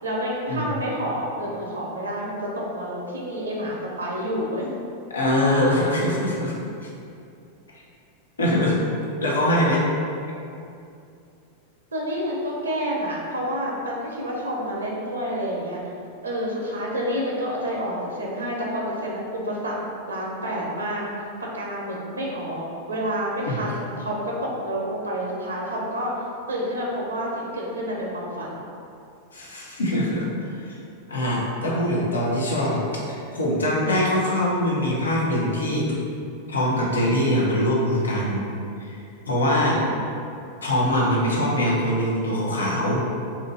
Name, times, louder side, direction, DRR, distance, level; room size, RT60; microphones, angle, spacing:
voice 1, 0.0-4.7 11.9-15.8 16.2-19.8 20.1-21.1 21.5-26.1 26.5-28.6 37.3-37.5 39.7-39.9, equal, 75° right, -3 dB, 0.6 m, -29 dB
voice 2, 5.1-6.9 8.4-8.8 9.2-9.8 23.5-23.6 29.3-30.8 31.1-35.9 36.5-38.4 38.8-39.8 40.6-43.0, left 1 dB, 70° left, -4 dB, 0.7 m, -23 dB
2.8 x 2.5 x 4.0 m, 2.6 s
figure-of-eight pair, 90°, 0 cm